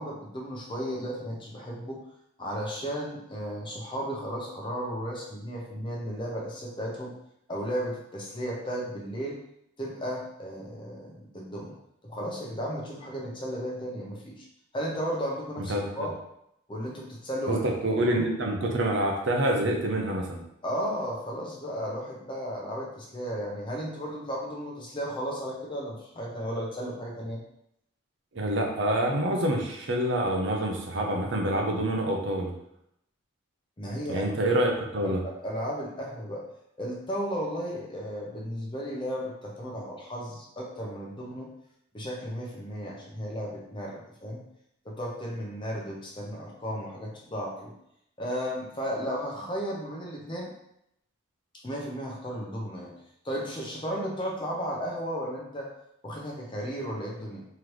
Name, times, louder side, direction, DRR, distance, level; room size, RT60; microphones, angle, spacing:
voice 1, 0.0-2.0 2.4-7.1 7.5-9.4 9.8-11.8 12.0-14.4 14.7-16.2 16.7-17.6 18.0-18.3 20.6-27.4 33.8-34.3 35.0-36.4 36.8-41.5 41.9-44.5 44.8-47.7 48.2-50.5 51.6-52.9 53.2-55.7 56.0-57.4, equal, 25° left, -2 dB, 0.7 m, -34 dB
voice 2, 15.7-16.1 17.5-20.4 28.3-32.5 34.1-35.2, right 1 dB, 60° right, 1 dB, 0.7 m, -27 dB
3.8 x 3.2 x 3.1 m, 0.77 s
head